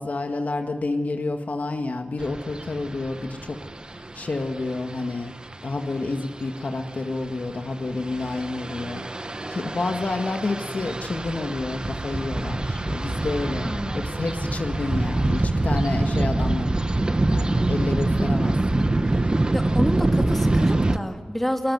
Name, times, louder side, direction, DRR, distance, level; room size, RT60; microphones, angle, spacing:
voice 1, 0.0-5.3 5.6-16.7 17.3-18.9, left 3 dB, 60° left, 5 dB, 1.9 m, -29 dB
sound 1, 2.2-21.0, right 2 dB, 30° right, 1.1 m, -25 dB
voice 2, 13.6-14.0 19.5-21.7, equal, 5° left, 3 dB, 3.1 m, -28 dB
21.0 x 21.0 x 9.6 m, 1.5 s
wide cardioid pair, 85°, 3 cm